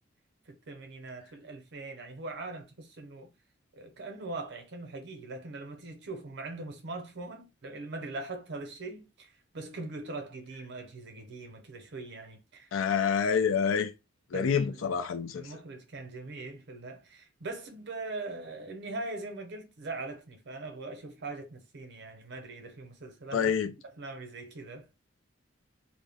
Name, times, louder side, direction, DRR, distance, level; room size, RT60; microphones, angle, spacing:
voice 1, 0.5-3.3 3.7-12.7 14.3-14.8 15.4-23.5 24.0-24.9, right 2 dB, 60° right, 0.7 m, -41 dB
voice 2, 12.7-13.9 14.3-15.5 23.3-23.7, left 6 dB, 85° left, 0.4 m, -27 dB
2.2 x 2.1 x 3.3 m
head